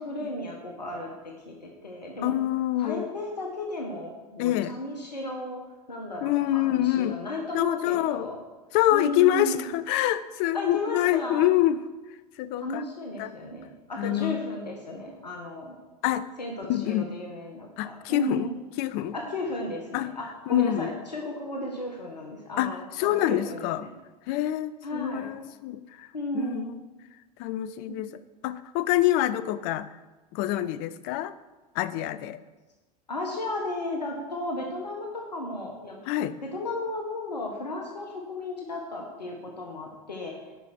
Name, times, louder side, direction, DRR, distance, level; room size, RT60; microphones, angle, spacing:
voice 1, 0.0-2.3 2.8-5.6 5.9-8.4 8.9-9.6 10.5-11.5 12.6-15.8 16.4-18.5 19.1-23.9 24.8-25.3 26.1-26.6 33.1-36.0 36.4-40.3, left 1 dB, 85° left, 1 dB, 1.5 m, -34 dB
voice 2, 2.2-3.1 4.4-4.7 6.2-7.2 7.5-8.3 8.7-11.8 12.4-12.8 13.2-13.3 14.0-14.4 16.0-16.3 16.7-17.1 17.8-18.5 18.8-19.1 19.9-20.1 20.5-21.0 22.6-23.9 24.3-26.1 26.3-26.9 27.4-29.9 30.3-31.3 31.7-32.4 36.1-36.4, left 14 dB, 50° left, 15 dB, 0.6 m, -26 dB
10.0 x 5.7 x 6.2 m, 1.2 s
figure-of-eight pair, 85°, 21 cm